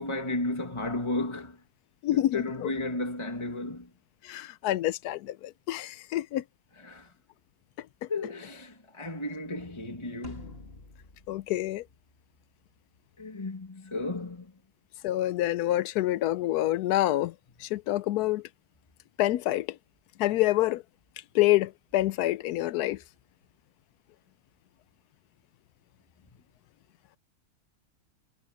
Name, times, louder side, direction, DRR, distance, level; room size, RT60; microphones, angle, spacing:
voice 1, 0.0-1.6 2.1-3.9 6.8-7.1 8.1-10.6 13.2-14.5, left 2 dB, 20° left, 1.9 m, -34 dB
voice 2, 2.0-2.4 4.2-6.4 11.3-11.8 15.0-17.3 17.6-18.4 19.2-19.7 20.2-20.8 21.3-23.0, left 15 dB, 90° left, 1.1 m, -27 dB
sound 1, 10.2-12.7, left 3 dB, 40° left, 2.2 m, -48 dB
omnidirectional pair, 1.6 m